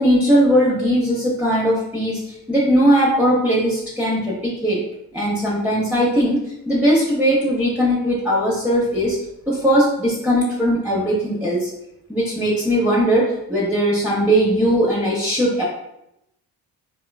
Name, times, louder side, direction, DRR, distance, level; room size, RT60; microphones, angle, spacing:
voice 1, 0.0-2.2 2.5-4.8 5.1-6.4 6.7-9.2 9.5-11.7 12.1-15.6, equal, 5° right, -7 dB, 0.7 m, -19 dB
2.9 x 2.3 x 2.2 m, 0.83 s
supercardioid pair, 60°, 41 cm